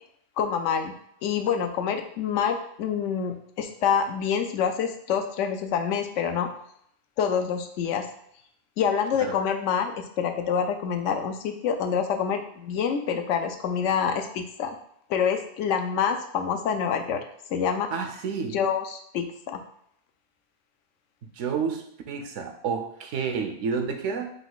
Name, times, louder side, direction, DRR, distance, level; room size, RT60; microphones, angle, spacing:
voice 1, 0.4-0.9 1.2-6.5 7.2-8.1 8.8-14.8 15.1-17.2 17.5-17.9 18.5-19.6, left 7 dB, 85° left, 6 dB, 0.9 m, -26 dB
voice 2, 17.9-18.6 21.3-24.3, right 5 dB, 85° right, 6 dB, 1.0 m, -30 dB
5.2 x 2.4 x 3.9 m, 0.70 s
omnidirectional pair, 1.2 m